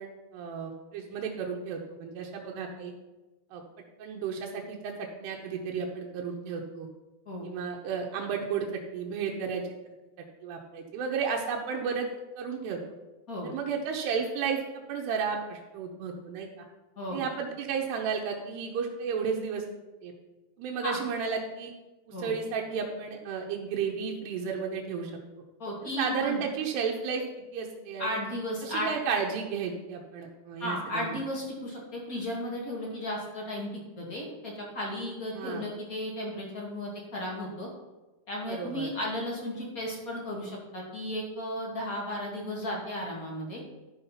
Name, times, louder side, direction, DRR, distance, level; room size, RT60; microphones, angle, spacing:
voice 1, 0.0-2.9 3.5-3.6 4.0-6.9 7.4-9.6 10.4-12.1 12.4-12.8 13.4-16.6 17.1-19.6 20.0-20.1 20.6-21.7 22.1-25.1 25.8-27.2 27.5-28.2 28.6-31.1 35.3-35.6 38.5-38.9, right 6 dB, 90° right, 0 dB, 3.1 m, -33 dB
voice 2, 25.6-26.4 28.0-28.9 30.6-37.7 38.3-43.6, left 1 dB, 30° left, -3 dB, 1.8 m, -34 dB
12.5 x 5.6 x 5.7 m, 1.1 s
omnidirectional pair, 4.6 m